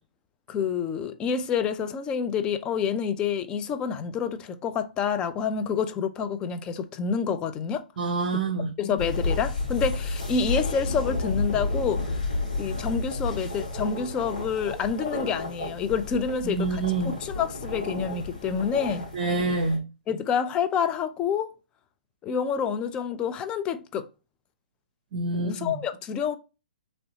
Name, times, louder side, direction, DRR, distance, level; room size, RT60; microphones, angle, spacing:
voice 1, 0.5-7.8 8.8-12.1 12.6-16.8 17.2-19.1 20.1-21.5 22.2-24.1 25.3-26.4, left 6 dB, 20° left, 0.3 m, -28 dB
voice 2, 8.0-8.7 16.4-17.1 19.1-19.8 25.1-25.8, right 3 dB, 50° right, 0.6 m, -27 dB
sound 1, 9.0-19.8, left 2 dB, 60° left, 1.7 m, -31 dB
3.1 x 2.6 x 2.7 m
figure-of-eight pair, 120°, 5 cm